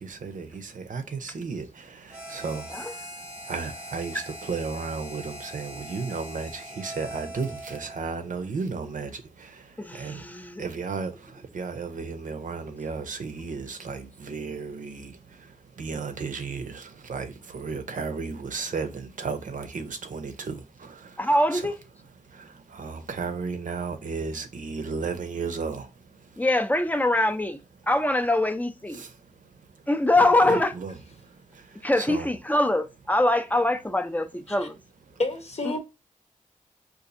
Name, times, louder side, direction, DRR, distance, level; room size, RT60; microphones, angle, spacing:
voice 1, 0.0-21.6 22.2-26.4 28.9-29.8 30.2-32.3, right 4 dB, 70° right, 0.6 m, -35 dB
Harmonica, 2.1-8.1, equal, 5° right, 0.9 m, -41 dB
voice 2, 9.8-10.6 21.2-21.8 26.4-27.6 27.9-29.0 29.9-30.7 31.8-34.8, left 1 dB, 10° left, 0.5 m, -23 dB
voice 3, 35.2-35.8, left 2 dB, 50° left, 0.8 m, -29 dB
3.9 x 2.5 x 2.5 m
cardioid pair, 55°, 14 cm